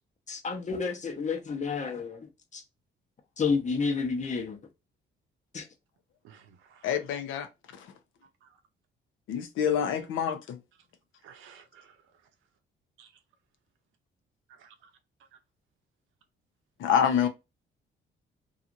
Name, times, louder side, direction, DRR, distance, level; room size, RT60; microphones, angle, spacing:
voice 1, 0.3-2.6 3.4-4.6 5.5-5.6, left 5 dB, 35° left, 0.8 m, -30 dB
voice 2, 6.2-6.9 8.4-8.5 11.2-12.0 13.0-13.1 14.6-14.9, right 7 dB, 85° right, 0.6 m, -55 dB
voice 3, 6.8-7.5 7.8-7.9 9.3-10.6 16.8-17.3, left 8 dB, 80° left, 0.6 m, -27 dB
2.8 x 2.4 x 2.5 m
cardioid pair, 90°, 20 cm